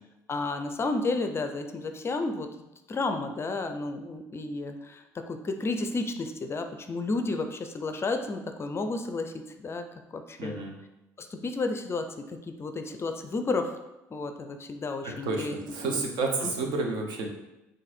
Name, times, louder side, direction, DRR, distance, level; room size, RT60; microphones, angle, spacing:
voice 1, 0.3-2.5 2.9-9.8 10.1-10.6 11.2-13.8 14.1-16.0 16.4-16.5, left 3 dB, 30° left, 7 dB, 0.4 m, -32 dB
voice 2, 10.4-10.7 15.0-17.3, right 3 dB, 60° right, 1 dB, 0.9 m, -30 dB
4.0 x 2.6 x 4.2 m, 0.96 s
hypercardioid pair, 60°, 9 cm